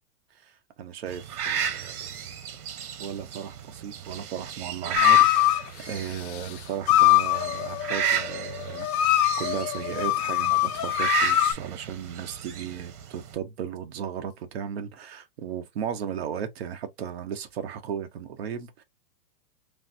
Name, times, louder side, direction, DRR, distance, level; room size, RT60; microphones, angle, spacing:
voice 1, 0.8-2.3 3.0-18.8, right 8 dB, 40° right, 0.7 m, -36 dB
sound 1, 1.1-13.4, right 8 dB, 70° right, 1.0 m, -33 dB
sound 2, 5.0-5.6 6.9-11.5, left 15 dB, 70° left, 0.6 m, -22 dB
3.2 x 2.5 x 2.6 m
supercardioid pair, 170°, 46 cm